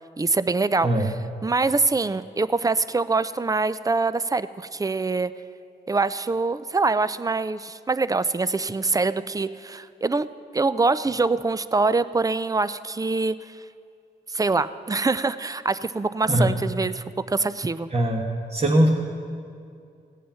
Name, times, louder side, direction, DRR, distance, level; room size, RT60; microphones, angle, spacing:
voice 1, 0.2-0.9 1.4-5.3 5.9-10.3 10.5-13.6 14.3-17.9, right 3 dB, 20° right, 14 dB, 0.5 m, -24 dB
voice 2, 17.9-18.2 18.5-18.9, right 1 dB, 35° right, -2 dB, 1.5 m, -20 dB
17.0 x 8.4 x 5.8 m, 2.3 s
cardioid pair, 50°, 18 cm